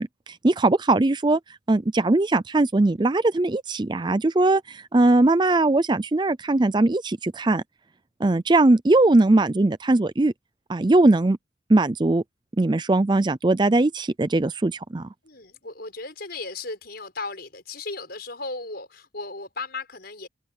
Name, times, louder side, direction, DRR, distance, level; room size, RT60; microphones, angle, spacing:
voice 1, 0.0-1.4 1.7-7.6 8.2-10.3 10.7-11.4 11.7-12.2 12.6-15.1, right 2 dB, 25° right, 0.4 m, -20 dB
voice 2, 15.2-20.3, left 3 dB, 50° left, 6.7 m, -36 dB
open air
head